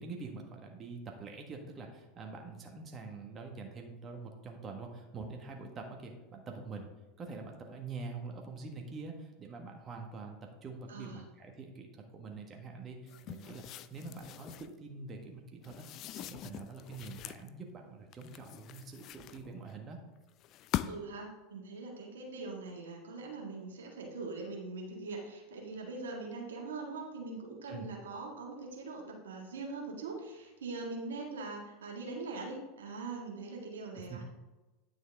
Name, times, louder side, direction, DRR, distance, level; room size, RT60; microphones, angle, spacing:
voice 1, 0.0-6.9 7.2-20.0 27.7-27.9 34.1-34.2, right 4 dB, 30° right, 2 dB, 1.5 m, -45 dB
voice 2, 10.9-11.2 20.9-34.2, right 3 dB, 80° right, 0 dB, 1.7 m, -42 dB
sound 1, 13.1-14.8 15.6-17.5 18.1-19.7 20.4-21.2, left 12 dB, 50° left, 0.4 m, -42 dB
9.7 x 6.2 x 3.6 m, 1.1 s
hypercardioid pair, 90°, 0 cm